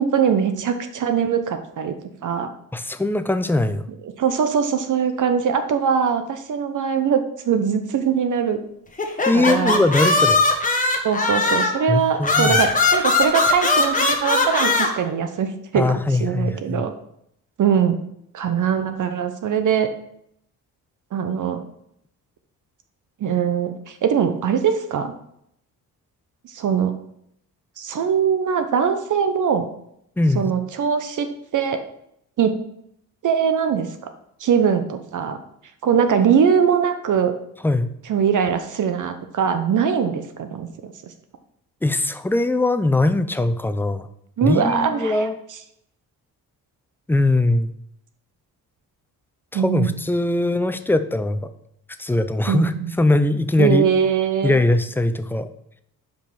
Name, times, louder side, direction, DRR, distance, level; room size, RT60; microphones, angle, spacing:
voice 1, 0.0-2.0 2.2-2.5 4.2-8.6 9.3-9.8 11.0-16.9 17.6-18.0 18.3-19.9 21.1-21.6 23.2-25.1 26.4-26.9 27.8-29.7 30.3-31.8 32.4-32.6 33.2-34.1 34.4-35.4 35.8-37.3 38.1-40.9 44.4-45.3 49.5-50.0 52.5-52.9 53.6-54.6, right 7 dB, 55° right, 8 dB, 0.8 m, -21 dB
voice 2, 2.7-3.9 9.3-10.4 11.9-12.6 15.8-16.9 30.2-30.5 37.6-37.9 41.8-44.1 44.4-45.4 47.1-47.7 49.5-51.5 52.0-52.7 53.0-53.9 54.4-55.5, left 2 dB, 5° left, 10 dB, 0.4 m, -21 dB
sound 1, 9.0-11.8 12.2-14.9, left 3 dB, 20° left, 1.2 m, -19 dB
5.2 x 5.2 x 5.8 m, 0.74 s
cardioid pair, 95°, 37 cm